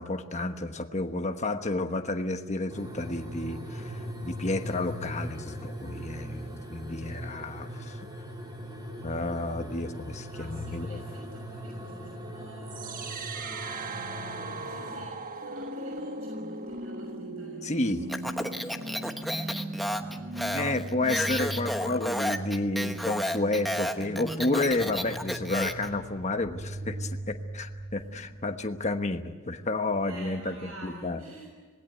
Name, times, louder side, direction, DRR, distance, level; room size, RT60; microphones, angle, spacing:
voice 1, 0.0-8.0 9.0-11.0 17.6-18.1 20.5-31.2, left 2 dB, 35° left, 6 dB, 1.2 m, -31 dB
sound 1, 2.7-15.0, equal, 20° right, 3.5 m, -40 dB
voice 2, 10.3-20.8 21.2-22.0 28.0-28.2 30.0-31.5, right 1 dB, 80° right, 0 dB, 6.3 m, -49 dB
sound 2, 12.7-28.7, right 2 dB, 40° right, 1.4 m, -38 dB
Speech, 18.1-25.9, equal, ahead, 1.1 m, -32 dB
26.5 x 19.5 x 8.2 m, 1.5 s
head